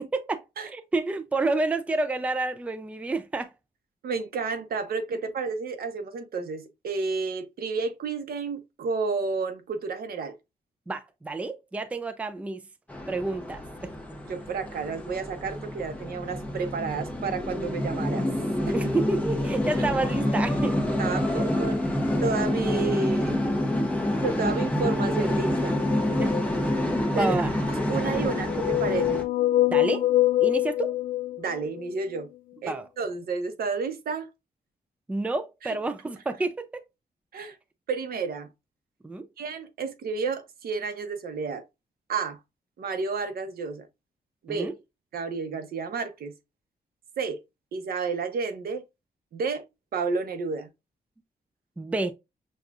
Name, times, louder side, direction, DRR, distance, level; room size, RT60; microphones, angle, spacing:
voice 1, 0.0-3.5 10.9-12.6 13.1-13.9 18.7-20.8 23.8-23.9 26.2-26.4 27.1-27.5 29.7-30.1 30.4-30.9 32.7-32.9 35.1-36.8 39.0-39.3 44.5-44.7 51.8-52.1, right 2 dB, 10° right, 0.4 m, -29 dB
voice 2, 4.0-10.4 14.3-18.3 18.7-18.8 21.0-21.8 22.2-23.4 24.2-25.7 27.1-27.3 27.7-29.2 31.4-32.3 32.6-34.3 35.6-35.7 37.3-37.6 37.9-38.5 39.4-41.6 42.1-42.4 42.8-43.9 44.4-44.7 45.1-46.3 47.2-47.4 47.7-48.8 49.3-49.6 49.9-50.7, right 4 dB, 80° right, 0.8 m, -31 dB
sound 1, 12.9-29.2, left 1 dB, 10° left, 0.8 m, -27 dB
sound 2, 25.5-27.1 28.0-31.8, left 14 dB, 60° left, 0.5 m, -26 dB
6.4 x 2.3 x 2.4 m
wide cardioid pair, 155°, 15 cm